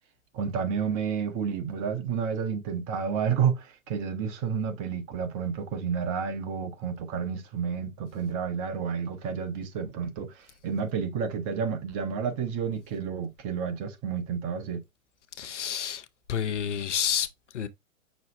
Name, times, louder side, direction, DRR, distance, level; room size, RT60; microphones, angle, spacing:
voice 1, 0.3-14.8, right 6 dB, 25° right, 0.8 m, -30 dB
voice 2, 15.4-17.7, left 9 dB, 60° left, 0.7 m, -30 dB
6.2 x 2.1 x 4.1 m
figure-of-eight pair, 110°, 41 cm